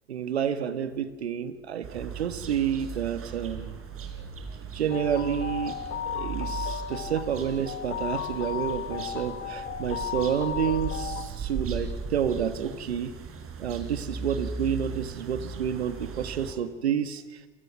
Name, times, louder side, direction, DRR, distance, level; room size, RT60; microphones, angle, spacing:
voice 1, 0.1-3.8 4.7-5.8 6.1-13.1 13.6-17.2, right 8 dB, 80° right, 10 dB, 1.7 m, -29 dB
sound 1, 1.8-16.5, right 5 dB, 45° right, 4.6 m, -38 dB
sound 2, 4.9-11.3, left 9 dB, 50° left, 2.3 m, -35 dB
29.0 x 28.0 x 6.2 m, 1.2 s
figure-of-eight pair, 65°, 32 cm